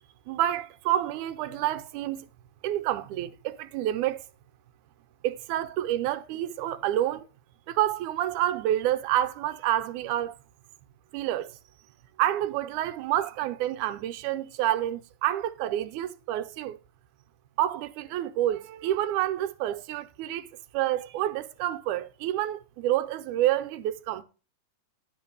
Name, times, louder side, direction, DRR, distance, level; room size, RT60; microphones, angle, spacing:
voice 1, 0.3-2.3 2.6-4.2 5.2-7.3 7.7-10.4 11.1-11.6 12.2-16.8 17.6-24.2, right 13 dB, 90° right, 2.1 m, -28 dB
11.0 x 3.8 x 6.6 m
omnidirectional pair, 3.5 m